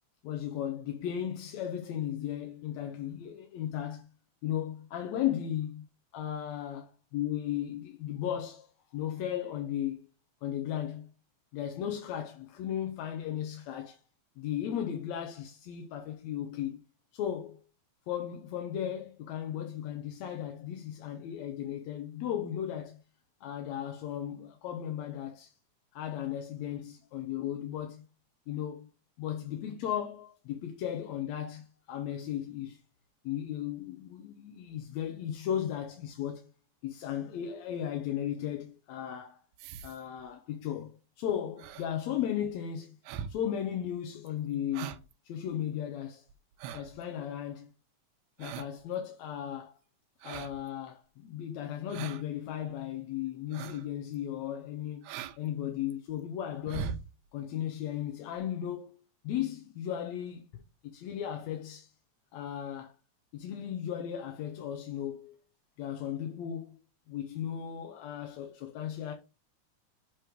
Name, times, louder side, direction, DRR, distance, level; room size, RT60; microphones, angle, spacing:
voice 1, 0.2-4.1 4.4-5.9 6.1-10.1 10.4-11.1 11.5-14.0 14.4-16.8 17.1-17.6 18.1-23.0 23.4-25.6 25.9-28.0 28.5-28.9 29.2-32.8 33.2-36.5 36.8-39.4 39.8-43.0 43.3-44.9 45.2-46.3 46.7-47.7 48.4-49.8 50.2-55.0 55.4-57.0 57.3-60.6 60.9-61.9 62.3-63.0 63.3-65.4 65.8-66.8 67.1-69.1, left 10 dB, 75° left, 2.0 m, -36 dB
sound 1, 39.6-40.2 41.6-41.9 42.4-42.5 43.0-43.4 43.8-43.9 44.3-44.4 44.7-45.1 45.5-45.6 46.3-47.0 48.4-48.8 50.2-50.7 51.9-52.2 52.6-52.7 53.5-53.9 54.1-54.2 55.0-55.4 55.7-56.1 56.5-57.1 58.0-58.1 58.4-58.5, right 8 dB, 85° right, 2.0 m, -40 dB
7.7 x 3.2 x 5.1 m
omnidirectional pair, 3.5 m